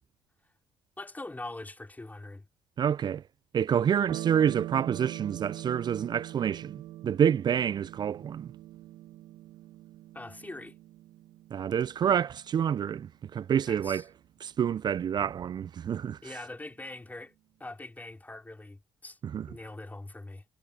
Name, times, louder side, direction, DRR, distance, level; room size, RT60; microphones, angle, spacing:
voice 1, 1.0-2.5 10.1-10.8 13.7-14.1 16.2-17.3 17.6-19.2 19.5-20.4, left 2 dB, 15° left, 3.9 m, -42 dB
voice 2, 2.8-3.2 3.5-8.5 11.5-14.0 14.4-16.2 19.3-19.5, right 8 dB, 50° right, 0.6 m, -28 dB
sound 1, 4.1-12.9, right 15 dB, 70° right, 2.2 m, -42 dB
hypercardioid pair, 45°, 10 cm